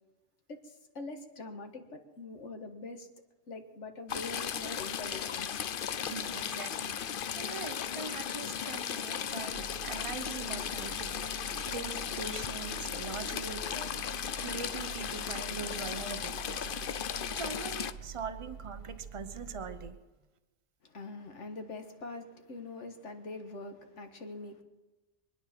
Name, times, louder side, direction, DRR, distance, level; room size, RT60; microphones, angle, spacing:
voice 1, 0.5-3.1 3.5-5.5 20.8-24.6, left 3 dB, 80° left, 1.9 m, -44 dB
Stream / Trickle dribble, 4.1-17.9, left 8 dB, 55° left, 0.8 m, -36 dB
voice 2, 5.8-20.0, right 5 dB, 30° right, 0.9 m, -43 dB
sound 1, 9.5-19.9, right 6 dB, 55° right, 1.2 m, -47 dB
24.5 x 9.8 x 6.0 m
omnidirectional pair, 1.2 m